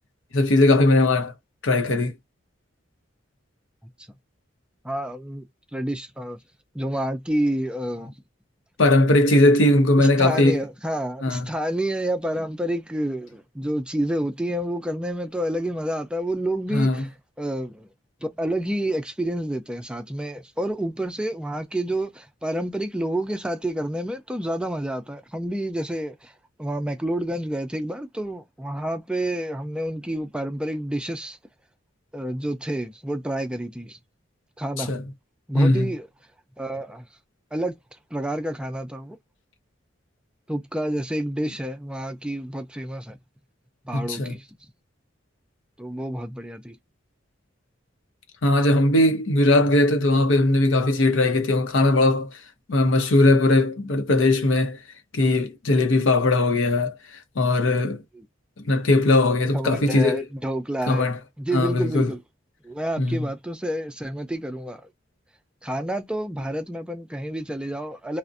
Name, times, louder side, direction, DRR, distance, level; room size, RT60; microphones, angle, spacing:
voice 1, 0.3-1.3 1.6-2.1 8.8-10.6 11.2-11.5 16.7-17.0 34.8-35.0 35.5-35.9 43.9-44.3 48.4-52.4 52.7-54.8 55.1-56.9 57.4-58.0 58.6-60.3 60.9-61.2 61.5-62.1 63.0-63.2, left 2 dB, 85° left, 0.7 m, -19 dB
voice 2, 4.8-5.5 5.7-6.4 6.7-8.1 10.0-17.1 17.4-17.9 18.2-26.3 26.6-31.4 32.1-34.0 34.6-34.9 35.5-36.1 36.6-37.1 37.5-37.8 38.1-39.2 40.5-43.2 43.8-44.5 45.8-46.8 58.1-58.2 59.5-61.1 61.4-62.2 62.6-64.8 65.6-68.2, right 1 dB, 5° right, 0.4 m, -29 dB
2.5 x 2.0 x 2.4 m
head